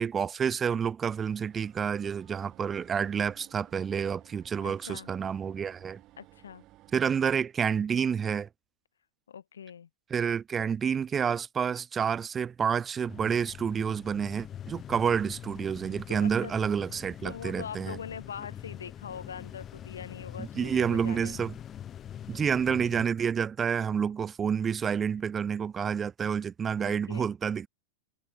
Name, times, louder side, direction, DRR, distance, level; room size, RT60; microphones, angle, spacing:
voice 1, 0.0-6.0 6.9-8.5 10.1-18.0 20.4-21.5 22.3-27.7, right 7 dB, 20° right, 0.4 m, -29 dB
sound 1, 1.0-7.2, right 17 dB, 35° right, 1.6 m, -57 dB
voice 2, 4.6-5.1 6.2-6.6 9.3-9.9 16.1-16.5 17.2-21.4 22.3-22.4 26.8-27.3, left 8 dB, 70° left, 1.3 m, -42 dB
sound 2, 13.1-23.1, left 10 dB, 25° left, 0.9 m, -44 dB
figure-of-eight pair, 90°, 0 cm